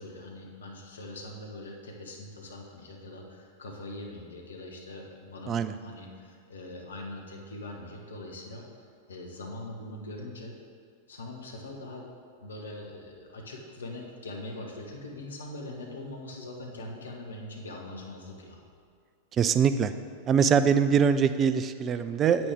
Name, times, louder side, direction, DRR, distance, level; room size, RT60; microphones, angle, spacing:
voice 1, 0.0-8.6 9.1-10.5 11.1-12.0 12.4-18.6, left 2 dB, 70° left, 1 dB, 1.2 m, -42 dB
voice 2, 19.4-19.9 20.3-22.5, right 7 dB, 25° right, 11 dB, 0.4 m, -23 dB
9.1 x 8.3 x 3.6 m, 2.1 s
figure-of-eight pair, 90°, 0 cm